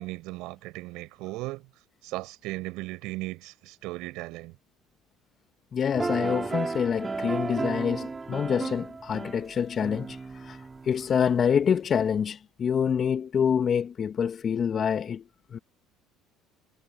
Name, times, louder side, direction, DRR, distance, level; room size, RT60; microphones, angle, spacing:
voice 1, 0.0-1.6 2.0-4.5, right 21 dB, 70° right, 6.1 m, -36 dB
voice 2, 5.7-15.2 15.5-15.6, left 7 dB, 45° left, 1.5 m, -26 dB
sound 1, 5.9-11.4, right 4 dB, 25° right, 3.2 m, -34 dB
hypercardioid pair, 65°, 0 cm